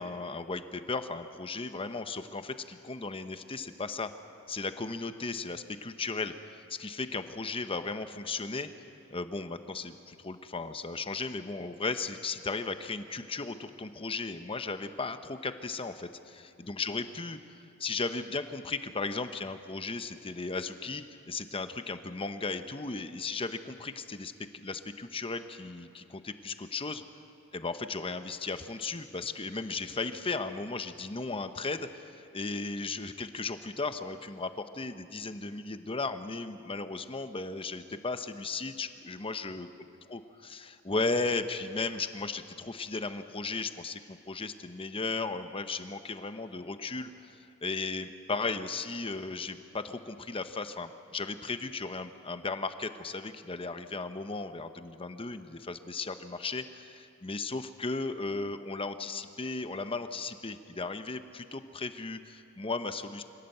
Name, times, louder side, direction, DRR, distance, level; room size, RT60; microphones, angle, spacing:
voice 1, 0.0-4.1 4.5-8.7 9.1-27.0 27.5-39.7 40.1-63.2, left 3 dB, 25° left, 9 dB, 0.9 m, -36 dB
25.0 x 17.0 x 7.9 m, 2.5 s
head